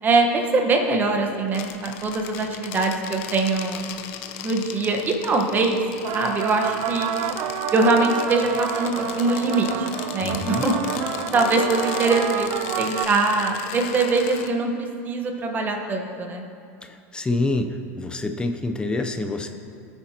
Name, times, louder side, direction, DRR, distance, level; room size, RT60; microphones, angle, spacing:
voice 1, 0.0-3.8 4.4-5.8 6.1-7.1 7.7-9.9 10.1-11.0 11.3-12.5 12.8-16.5, right 3 dB, 25° right, 3 dB, 1.2 m, -22 dB
sound 1, 1.5-14.5, left 8 dB, 65° left, 0.8 m, -36 dB
sound 2, 6.0-13.1, right 10 dB, 45° right, 0.4 m, -29 dB
voice 2, 10.2-10.6 17.1-17.7 18.0-19.5, left 2 dB, 10° left, 6 dB, 0.6 m, -26 dB
17.5 x 9.2 x 2.9 m, 2.5 s
supercardioid pair, 130°, 8 cm